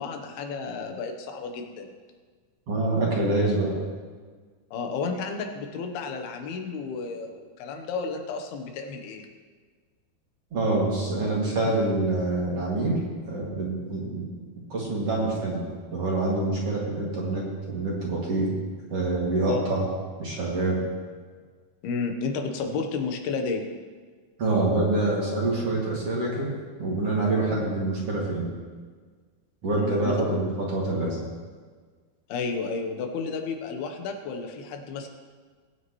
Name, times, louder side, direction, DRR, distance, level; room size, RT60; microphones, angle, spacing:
voice 1, 0.0-1.9 4.7-9.3 19.5-19.6 21.8-23.7 29.8-30.1 32.3-35.1, left 4 dB, 80° left, 4 dB, 3.0 m, -32 dB
voice 2, 2.7-3.7 10.5-13.0 13.3-14.3 14.7-18.5 18.9-19.9 20.2-20.8 24.4-26.5 26.8-28.5 29.6-31.1, right 2 dB, 45° right, -5 dB, 2.9 m, -26 dB
19.5 x 9.3 x 3.1 m, 1.5 s
omnidirectional pair, 4.4 m